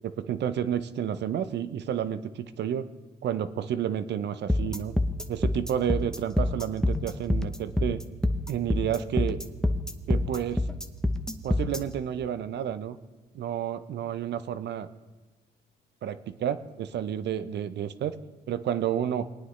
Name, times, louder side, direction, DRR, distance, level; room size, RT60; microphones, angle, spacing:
voice 1, 0.0-2.9 3.2-4.9 5.3-8.0 8.5-9.4 10.1-10.6 11.4-13.0 13.3-14.9 16.0-18.2 18.5-19.3, right 9 dB, 65° right, 13 dB, 0.7 m, -30 dB
sound 1, 4.5-11.8, left 1 dB, 5° left, 0.8 m, -26 dB
20.0 x 9.4 x 3.2 m, 1.3 s
cardioid pair, 85°, 19 cm